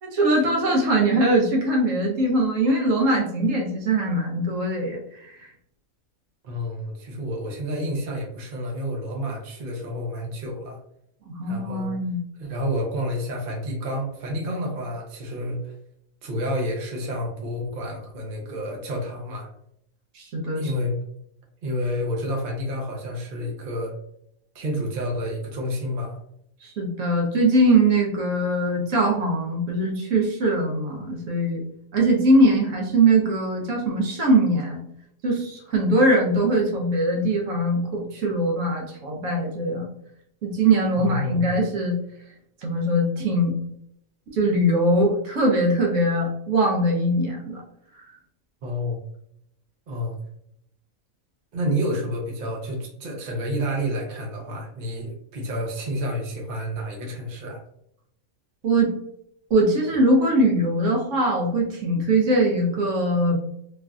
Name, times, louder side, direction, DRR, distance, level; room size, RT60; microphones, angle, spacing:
voice 1, 0.0-5.0 5.3-5.4 11.3-12.2 20.1-20.6 26.6-31.6 31.9-34.8 35.2-39.9 40.4-42.0 42.6-43.5 44.3-47.6 58.6-58.9 59.5-63.4, right 1 dB, 65° right, -1 dB, 1.0 m, -21 dB
voice 2, 6.4-10.8 11.5-11.9 12.4-15.7 16.2-19.5 20.5-21.0 21.6-23.9 24.5-26.2 41.0-41.5 48.6-49.0 49.9-50.2 51.5-57.6, equal, 50° right, -1 dB, 0.7 m, -29 dB
3.2 x 2.5 x 2.3 m, 0.72 s
omnidirectional pair, 1.5 m